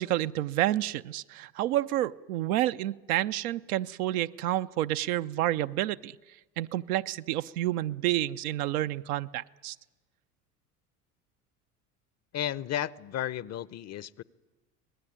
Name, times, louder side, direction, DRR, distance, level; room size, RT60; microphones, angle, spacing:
voice 1, 0.0-6.2 6.6-9.7, right 14 dB, 70° right, 0.8 m, -29 dB
voice 2, 12.3-14.2, left 11 dB, 35° left, 0.7 m, -33 dB
25.5 x 19.0 x 9.9 m
hypercardioid pair, 70°, 46 cm